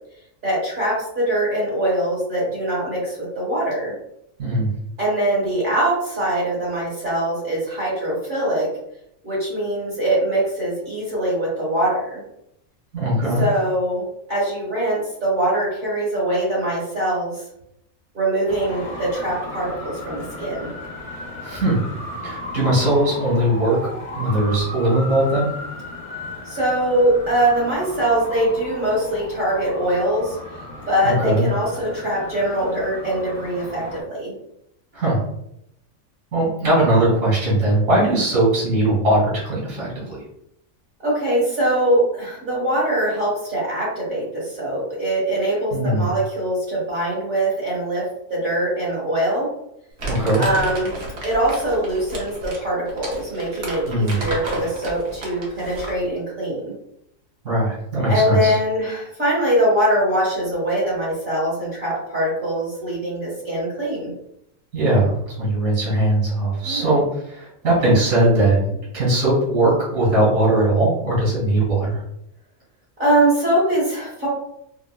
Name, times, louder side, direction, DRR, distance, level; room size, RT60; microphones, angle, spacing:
voice 1, 0.4-3.9 5.0-8.7 9.2-12.2 13.4-17.5 18.1-20.7 26.4-30.4 30.9-34.3 41.0-49.5 50.4-50.9 51.2-56.7 58.1-64.1 66.6-66.9 67.8-67.9 73.0-74.3, right 1 dB, 40° right, -8 dB, 1.8 m, -22 dB
voice 2, 12.9-13.5 21.4-21.8 22.2-23.8 24.1-25.5 31.0-31.4 34.9-35.2 36.3-40.2 45.7-46.0 50.1-50.5 53.9-54.2 57.4-58.6 64.7-65.1 65.4-72.0, right 1 dB, 80° right, -7 dB, 2.1 m, -19 dB
Traffic noise roadway noise, 18.5-34.0, left 2 dB, 35° left, 0.6 m, -35 dB
Crumpling crinkling, 50.0-56.1, right 2 dB, 60° right, 1.1 m, -32 dB
4.6 x 2.1 x 2.2 m, 0.77 s
omnidirectional pair, 1.4 m